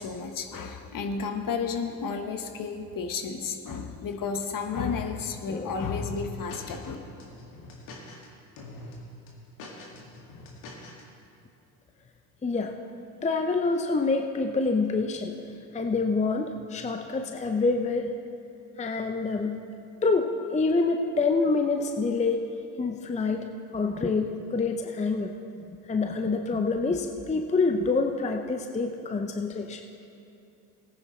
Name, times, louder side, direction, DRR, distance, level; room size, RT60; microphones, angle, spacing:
voice 1, 0.0-7.0, left 5 dB, 45° left, 6 dB, 1.3 m, -32 dB
sound 1, 5.8-6.9 7.2-8.3 8.6-9.0 9.3-11.0, left 2 dB, 70° left, 2.2 m, -44 dB
voice 2, 12.4-12.8 13.2-15.4 15.7-18.1 18.8-19.6 20.0-22.4 22.8-23.5 23.7-25.3 25.9-29.8, left 3 dB, 15° left, 5 dB, 0.6 m, -26 dB
18.0 x 9.7 x 3.2 m, 2.8 s
hypercardioid pair, 70°, 47 cm